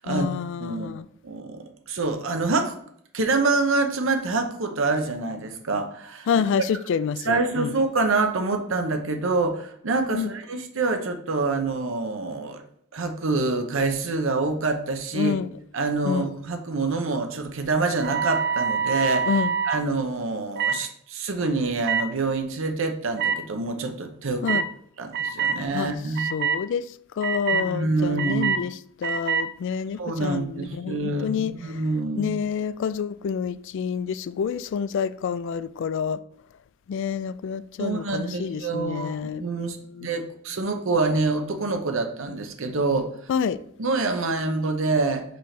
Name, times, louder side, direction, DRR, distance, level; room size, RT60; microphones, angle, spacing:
voice 1, 0.1-1.1 6.3-7.7 10.1-10.3 15.1-15.5 16.0-16.3 19.3-19.5 24.4-24.6 25.7-25.9 26.3-26.9 27.2-31.5 32.2-36.2 36.9-39.4 40.0-40.1 43.3-43.6, left 6 dB, 65° left, 0.3 m, -28 dB
voice 2, 0.6-0.9 1.2-2.7 3.1-6.3 7.2-12.6 12.9-15.3 15.7-19.4 19.7-24.6 25.0-26.3 27.5-28.6 30.0-32.3 37.8-43.1 43.8-45.2, right 3 dB, 70° right, 0.8 m, -26 dB
sound 1, 18.0-19.8 20.6-20.8 21.8-22.0 23.2-23.3 24.5-24.7 25.1-25.6 26.1-26.6 27.2-27.6 28.2-28.6 29.0-29.4, right 6 dB, 55° right, 0.5 m, -25 dB
5.8 x 5.2 x 3.3 m
head